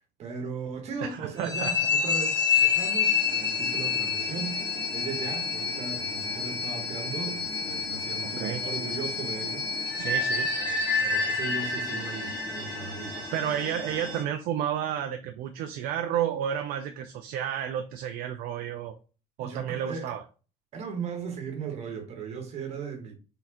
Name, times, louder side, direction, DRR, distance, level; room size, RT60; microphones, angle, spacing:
voice 1, 0.2-10.1 10.6-13.3 19.4-20.1 20.7-23.2, right 5 dB, 40° right, 1.2 m, -37 dB
voice 2, 1.0-1.7 8.4-8.6 10.0-10.5 13.3-18.9 19.4-20.2, right 9 dB, 60° right, 0.4 m, -31 dB
sound 1, 1.4-14.2, left 5 dB, 25° left, 1.2 m, -28 dB
4.1 x 3.8 x 2.9 m
cardioid pair, 175°, 17 cm